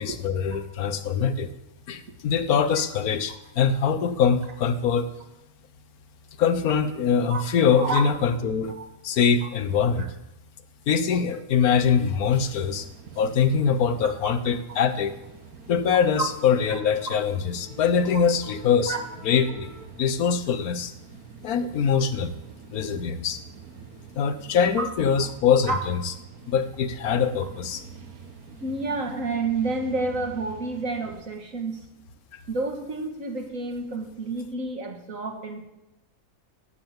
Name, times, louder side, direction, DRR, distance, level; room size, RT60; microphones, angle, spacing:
voice 1, 0.0-1.5 1.9-5.1 6.4-8.7 9.0-10.1 10.9-12.8 13.2-15.2 15.7-18.9 19.2-19.7 20.0-20.9 21.4-22.3 22.7-23.4 24.2-26.0 26.5-27.8, left 6 dB, 90° left, 11 dB, 1.4 m, -23 dB
sound 1, 12.1-31.2, right 5 dB, 85° right, 1.6 m, -46 dB
voice 2, 28.6-31.8 32.5-35.6, right 3 dB, 65° right, 3 dB, 2.1 m, -29 dB
17.5 x 6.8 x 7.3 m, 0.94 s
omnidirectional pair, 1.5 m